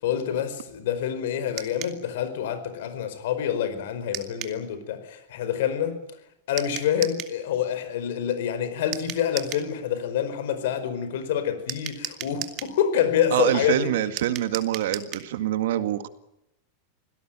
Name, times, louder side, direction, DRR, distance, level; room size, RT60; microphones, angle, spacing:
voice 1, 0.0-6.0 6.5-13.9, left 9 dB, 65° left, 5.0 m, -27 dB
sound 1, 1.6-2.0 4.1-4.6 6.6-7.4 8.9-9.7 11.7-12.8 14.2-15.3, right 13 dB, 35° right, 2.3 m, -35 dB
voice 2, 13.3-16.1, right 12 dB, 70° right, 1.9 m, -25 dB
26.0 x 17.5 x 9.1 m
supercardioid pair, 165°, 0 cm